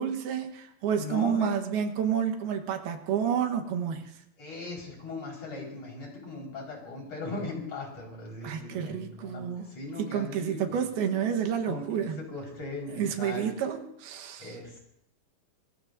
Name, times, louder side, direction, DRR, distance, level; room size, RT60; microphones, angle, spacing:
voice 1, 0.0-4.1 8.4-9.7 10.0-12.2 13.0-14.5, right 8 dB, 85° right, 5 dB, 3.2 m, -30 dB
voice 2, 1.0-1.5 4.4-10.8 11.7-13.5 14.4-14.8, left 3 dB, 45° left, -1 dB, 5.7 m, -39 dB
25.5 x 21.5 x 2.6 m, 0.74 s
omnidirectional pair, 4.3 m